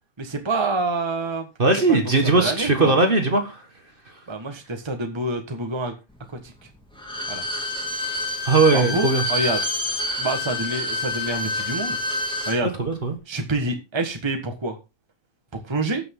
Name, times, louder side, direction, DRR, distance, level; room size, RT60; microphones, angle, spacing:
voice 1, 0.2-1.5 1.9-2.9 4.3-5.9 7.3-7.4 8.7-9.6 10.2-12.0 12.5-12.7 13.3-14.8 15.5-16.0, right 2 dB, 20° right, 1.5 m, -27 dB
voice 2, 1.6-3.6 8.4-9.2 12.8-13.2, right 3 dB, 40° right, 1.7 m, -19 dB
Bowed string instrument, 7.0-12.6 12.9-13.0, left 2 dB, 5° left, 2.8 m, -27 dB
17.5 x 6.2 x 3.7 m
omnidirectional pair, 1.5 m